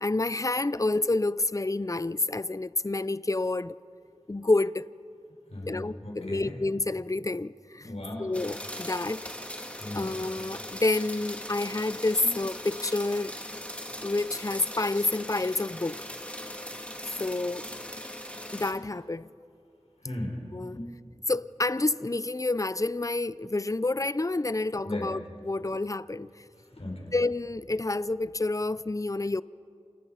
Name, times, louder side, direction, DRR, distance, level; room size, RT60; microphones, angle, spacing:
voice 1, 0.0-3.8 4.3-4.9 5.7-7.9 8.2-9.6 9.9-13.3 14.0-16.0 17.2-17.7 18.5-19.3 20.5-20.8 21.3-26.4 27.1-29.4, left 2 dB, 30° left, 0.5 m, -29 dB
voice 2, 5.5-6.5 7.8-8.3 9.8-10.1 12.2-12.4 18.7-18.8 20.0-20.9 23.4-23.5 24.8-25.1 26.8-27.1, left 1 dB, 65° left, 5.2 m, -37 dB
sound 1, 8.3-18.7, equal, 10° left, 2.5 m, -40 dB
29.0 x 28.0 x 5.7 m
wide cardioid pair, 40°, 11 cm